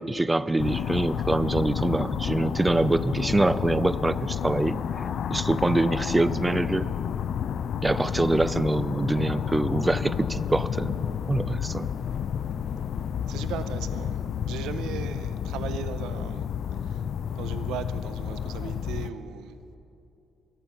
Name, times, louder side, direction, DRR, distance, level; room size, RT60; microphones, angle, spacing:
voice 1, 0.0-4.8 5.3-6.9 7.8-10.9 11.3-11.9, right 2 dB, 15° right, 16 dB, 0.5 m, -25 dB
sound 1, 0.6-19.1, left 8 dB, 65° left, 0.5 m, -30 dB
voice 2, 13.3-17.0 17.3-19.6, right 9 dB, 90° right, 12 dB, 0.7 m, -38 dB
23.0 x 9.1 x 5.7 m, 2.8 s
cardioid pair, 90°, 0 cm